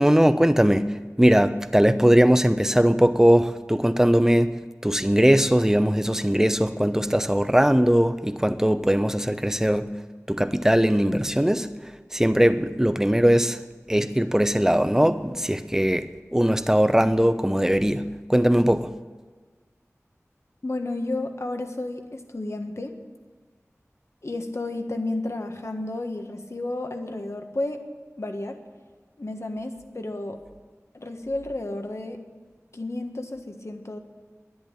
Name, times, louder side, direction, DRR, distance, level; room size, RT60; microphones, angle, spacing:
voice 1, 0.0-9.9 10.3-11.7 12.1-13.6 13.9-18.9, equal, 10° right, 0.7 m, -20 dB
voice 2, 20.6-23.0 24.2-27.8 28.2-28.6 29.2-30.4 30.9-32.2 32.7-34.0, left 2 dB, 60° left, 1.4 m, -32 dB
11.0 x 10.5 x 8.8 m
wide cardioid pair, 45°, 5 cm